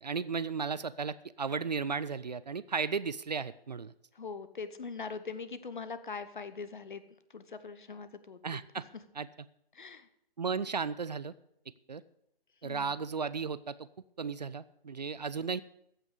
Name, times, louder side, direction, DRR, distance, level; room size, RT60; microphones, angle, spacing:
voice 1, 0.0-3.9 8.4-8.8 9.1-9.3 10.4-11.3 11.9-12.0 12.6-13.9 14.2-15.6, right 5 dB, 45° right, 16 dB, 0.5 m, -35 dB
voice 2, 4.1-7.0 7.3-8.4 9.7-10.1 12.6-12.9, left 5 dB, 55° left, 13 dB, 1.1 m, -42 dB
14.5 x 5.9 x 8.1 m, 0.76 s
figure-of-eight pair, 140°, 30 cm